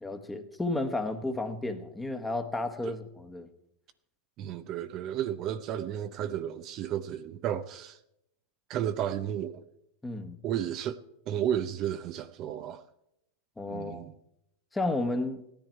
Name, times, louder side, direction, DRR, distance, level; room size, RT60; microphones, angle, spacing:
voice 1, 0.0-3.5 10.0-10.4 13.6-14.0 14.7-15.4, left 2 dB, 10° left, 1.3 m, -32 dB
voice 2, 4.4-8.0 8.7-9.6 10.4-11.0 11.3-12.8 13.7-14.1, right 10 dB, 45° right, 0.7 m, -33 dB
16.0 x 10.5 x 4.6 m
hypercardioid pair, 100°, 0 cm